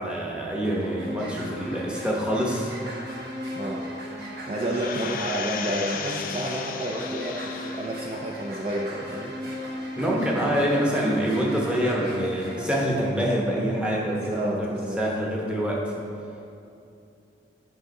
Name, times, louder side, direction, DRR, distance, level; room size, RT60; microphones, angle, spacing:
voice 1, 0.0-2.7 10.0-15.9, equal, 5° right, -4 dB, 0.9 m, -26 dB
sound 1, 0.6-12.6, equal, 65° right, 1.2 m, -37 dB
voice 2, 3.5-3.8 4.5-9.3 14.1-15.0, right 1 dB, 30° right, -2 dB, 0.4 m, -30 dB
sound 2, 4.7-8.1 8.5-8.6, left 6 dB, 50° left, 0.4 m, -35 dB
8.0 x 3.7 x 5.2 m, 2.6 s
head